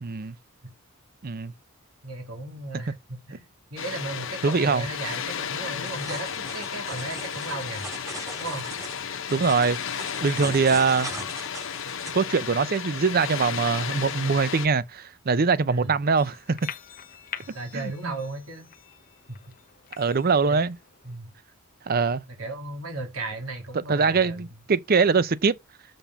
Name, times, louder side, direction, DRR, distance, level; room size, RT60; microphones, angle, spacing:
voice 1, 0.0-0.4 1.2-1.5 2.7-2.8 4.4-4.9 9.3-9.8 10.2-11.1 12.1-16.7 17.7-18.2 20.0-20.8 21.9-22.2 23.9-25.6, right 5 dB, 45° right, 0.6 m, -23 dB
voice 2, 2.0-3.5 3.7-7.9 8.4-8.7 15.7-15.9 17.5-18.7 19.3-19.4 20.5-20.6 21.0-21.3 22.3-24.5, right 2 dB, 80° right, 3.1 m, -35 dB
Water, 3.8-14.7, left 7 dB, 65° left, 0.9 m, -33 dB
sound 1, 5.8-12.1, right 2 dB, 15° right, 2.2 m, -40 dB
sound 2, 16.2-21.2, left 8 dB, 40° left, 1.1 m, -44 dB
7.2 x 5.4 x 7.2 m
head